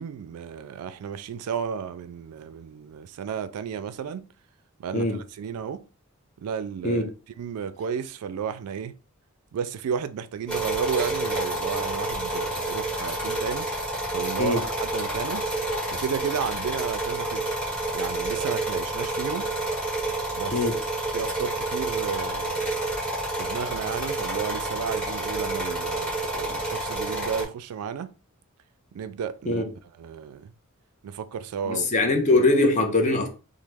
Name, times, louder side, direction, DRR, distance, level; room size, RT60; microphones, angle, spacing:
voice 1, 0.0-4.3 4.8-5.8 6.4-7.0 7.4-9.0 9.5-13.7 14.1-15.5 15.9-17.5 17.9-19.5 20.3-20.6 21.1-22.7 23.4-28.1 28.9-29.7 30.0-30.5 31.0-32.1, right 7 dB, 85° right, 0.3 m, -33 dB
sound 1, 10.5-27.4, right 1 dB, 5° left, 1.0 m, -29 dB
voice 2, 31.7-33.3, left 2 dB, 35° left, 0.5 m, -22 dB
3.0 x 2.0 x 3.3 m
head